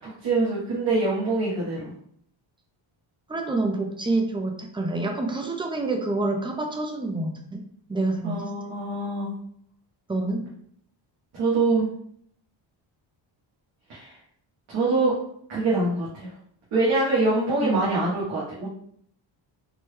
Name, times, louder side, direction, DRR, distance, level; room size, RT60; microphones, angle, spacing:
voice 1, 0.0-1.9 8.2-9.3 11.3-11.9 13.9-14.2 14.7-15.1 15.5-16.3 16.7-18.7, right 2 dB, 90° right, -9 dB, 1.4 m, -24 dB
voice 2, 3.3-7.6 7.9-8.4 10.1-10.5 17.6-17.9, right 2 dB, 10° right, 3 dB, 0.4 m, -27 dB
4.3 x 2.2 x 3.2 m, 0.66 s
cardioid pair, 125°, 48 cm